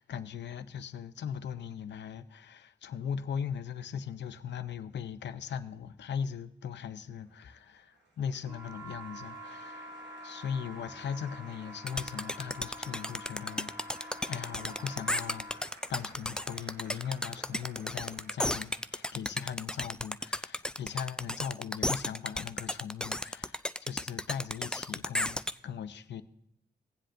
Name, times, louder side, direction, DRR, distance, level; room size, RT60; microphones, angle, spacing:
voice 1, 0.0-10.0 10.2-15.6 15.9-26.2, left 7 dB, 80° left, 0.6 m, -39 dB
Applause, 7.2-19.6, right 3 dB, 80° right, 1.2 m, -55 dB
sound 1, 8.4-15.7, left 1 dB, 15° right, 0.9 m, -47 dB
sound 2, 11.9-25.5, left 1 dB, 5° left, 0.3 m, -33 dB
18.5 x 7.6 x 2.6 m
cardioid pair, 55°, 18 cm